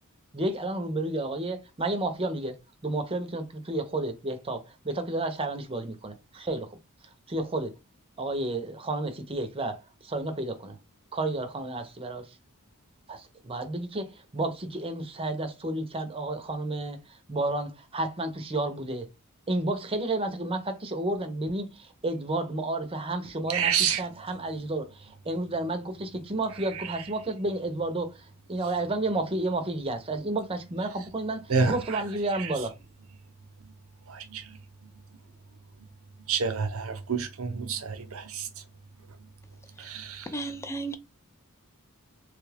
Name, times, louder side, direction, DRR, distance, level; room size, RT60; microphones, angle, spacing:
voice 1, 0.3-6.8 7.0-7.7 8.2-10.8 11.1-12.4 13.1-19.1 19.5-32.7, right 2 dB, 25° right, 0.6 m, -31 dB
voice 2, 23.5-24.0 31.5-31.8 32.4-32.5 34.1-34.5 36.3-38.5 39.8-40.3, right 6 dB, 70° right, 0.7 m, -28 dB
voice 3, 40.3-40.9, right 2 dB, 15° left, 0.4 m, -33 dB
3.2 x 2.3 x 3.3 m
head